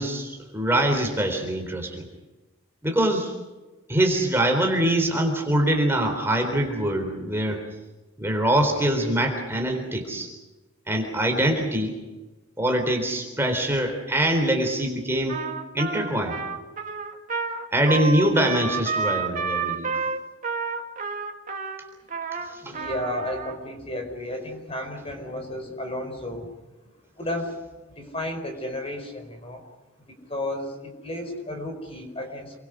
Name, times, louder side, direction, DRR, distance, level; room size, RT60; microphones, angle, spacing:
voice 1, 0.0-2.1 2.8-3.3 3.9-7.6 8.2-10.3 10.9-11.9 12.6-15.4 15.7-16.4 17.7-19.9 22.7-22.8, right 1 dB, 10° right, 3 dB, 3.7 m, -23 dB
Trumpet, 15.3-23.5, right 4 dB, 35° right, 1.9 m, -30 dB
voice 2, 22.1-26.5 27.2-27.6 28.0-29.6 30.3-32.6, left 1 dB, 25° left, 5 dB, 4.7 m, -33 dB
28.5 x 23.5 x 6.3 m, 1.1 s
head